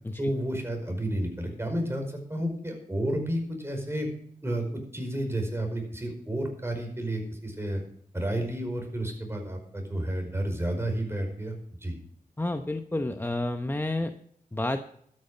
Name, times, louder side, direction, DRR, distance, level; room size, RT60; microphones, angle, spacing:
voice 1, 0.2-4.1 4.4-4.6 4.9-7.8 8.1-11.5 11.8-11.9, right 1 dB, 15° right, 3 dB, 5.1 m, -31 dB
voice 2, 12.4-14.1 14.5-14.8, left 2 dB, 15° left, 7 dB, 0.9 m, -30 dB
12.5 x 9.8 x 5.5 m, 0.65 s
cardioid pair, 70°, 15 cm